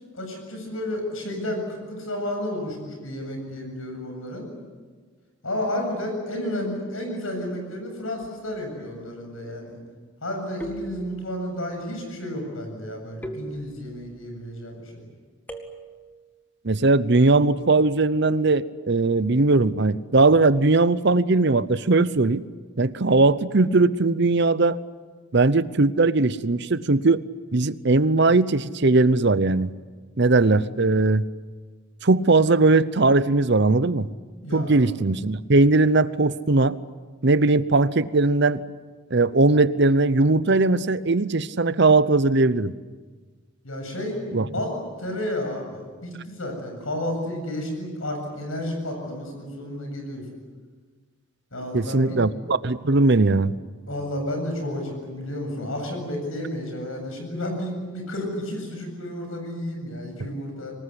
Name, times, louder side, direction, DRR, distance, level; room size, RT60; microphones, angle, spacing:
voice 1, 0.1-4.5 5.4-9.8 10.2-14.9 34.4-34.8 43.6-50.2 51.5-52.2 53.9-60.8, left 1 dB, 80° left, 3 dB, 7.7 m, -31 dB
sound 1, 8.2-8.7 10.6-11.5 13.2-14.2 15.5-16.2, right 1 dB, 10° left, 2.0 m, -39 dB
voice 2, 16.6-22.4 22.8-24.8 25.3-27.2 27.5-29.7 30.2-31.2 32.0-34.1 34.5-36.8 37.2-38.6 39.1-42.7 44.3-44.5 51.7-53.6, right 3 dB, 55° right, 16 dB, 0.8 m, -19 dB
25.0 x 20.0 x 9.9 m, 1.4 s
head